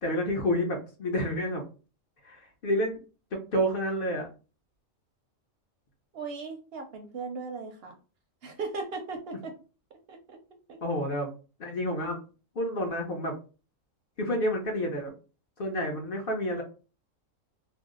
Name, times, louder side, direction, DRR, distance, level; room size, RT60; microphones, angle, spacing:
voice 1, 0.0-1.6 2.2-3.0 3.5-4.3 10.8-11.3 11.6-12.2 12.5-13.4 14.2-15.1 15.6-16.6, equal, 50° left, 2 dB, 0.8 m, -29 dB
voice 2, 6.1-7.9 8.4-9.5 10.1-10.4 10.7-10.8, right 4 dB, 65° right, 4 dB, 0.7 m, -37 dB
2.6 x 2.0 x 3.6 m, 0.34 s
omnidirectional pair, 1.3 m